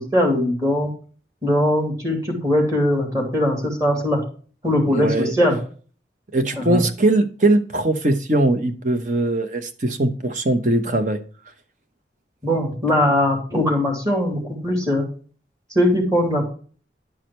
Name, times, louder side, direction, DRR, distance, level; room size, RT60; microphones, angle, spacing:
voice 1, 0.1-0.9 1.4-4.2 4.6-5.6 6.6-6.8 12.4-15.0 15.7-16.5, left 1 dB, 20° right, 0 dB, 2.7 m, -20 dB
voice 2, 4.9-5.3 6.3-11.2, right 2 dB, 45° right, 8 dB, 0.9 m, -20 dB
10.5 x 4.9 x 4.4 m, 0.41 s
head